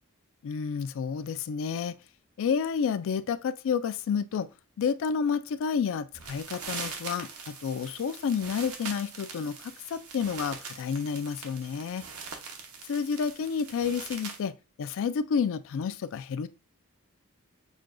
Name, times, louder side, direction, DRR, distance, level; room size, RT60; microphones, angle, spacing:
voice 1, 0.4-1.9 2.4-4.5 4.8-12.0 12.8-16.5, left 6 dB, 60° left, 0.3 m, -30 dB
sound 1, 6.1-14.4, right 5 dB, 90° right, 0.9 m, -42 dB
6.2 x 2.2 x 2.4 m
head